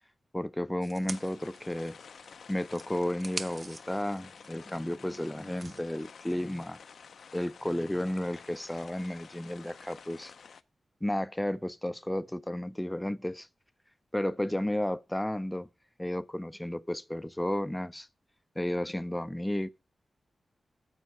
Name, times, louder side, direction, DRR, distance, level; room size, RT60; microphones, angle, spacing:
voice 1, 0.3-2.0 2.5-6.8 7.3-10.3 11.0-13.5 14.1-15.7 16.0-18.1 18.6-19.7, left 1 dB, 10° left, 0.5 m, -33 dB
sound 1, 0.8-2.3 2.7-5.8, right 3 dB, 35° right, 0.7 m, -45 dB
sound 2, 1.1-10.6, left 6 dB, 80° left, 0.6 m, -51 dB
9.3 x 7.5 x 5.4 m
wide cardioid pair, 115°, 0 cm